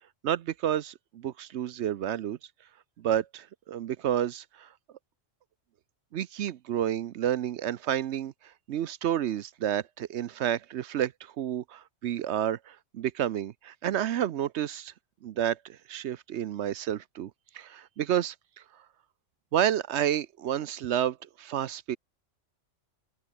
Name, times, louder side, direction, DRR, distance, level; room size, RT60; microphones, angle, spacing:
voice 1, 0.2-2.4 3.0-4.7 6.1-14.9 15.2-18.3 19.5-22.0, right 10 dB, 65° right, 0.9 m, -30 dB
omnidirectional pair, 1.3 m